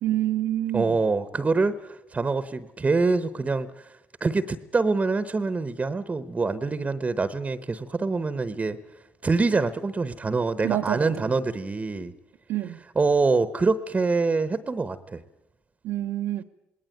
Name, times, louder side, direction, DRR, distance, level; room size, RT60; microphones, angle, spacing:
voice 1, 0.0-1.0 10.6-11.3 12.5-12.8 15.8-16.4, right 13 dB, 80° right, 2 dB, 0.9 m, -27 dB
voice 2, 0.7-8.8 9.2-12.1 13.0-15.2, right 3 dB, 30° right, 14 dB, 1.0 m, -25 dB
19.5 x 18.5 x 9.3 m, 0.92 s
supercardioid pair, 75°, 5 cm